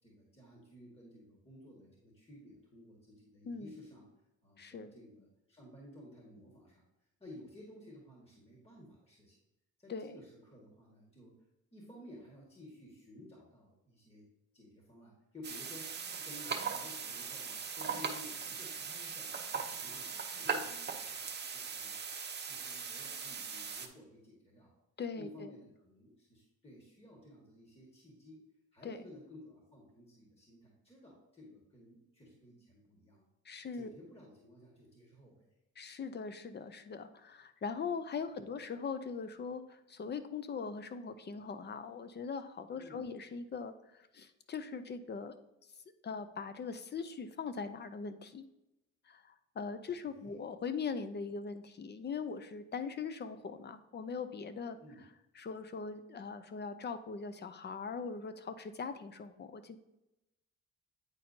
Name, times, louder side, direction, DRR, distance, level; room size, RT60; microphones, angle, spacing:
voice 1, 0.0-4.1 4.4-6.8 7.2-9.4 9.8-11.3 11.7-14.3 14.5-22.0 22.5-24.7 25.2-28.4 28.7-33.3 33.7-35.5 42.7-43.1 50.2-50.4 54.8-55.0, left 1 dB, 20° left, -2 dB, 1.8 m, -55 dB
voice 2, 4.6-4.9 9.9-10.2 25.0-25.5 28.8-29.0 33.5-33.9 35.8-43.7 44.1-45.3 46.0-48.5 49.1-54.8 55.4-59.8, left 5 dB, 35° left, 11 dB, 0.6 m, -41 dB
sound 1, 15.4-23.9, right 6 dB, 35° right, 0.8 m, -39 dB
8.8 x 4.3 x 2.7 m, 0.92 s
cardioid pair, 90°, 30 cm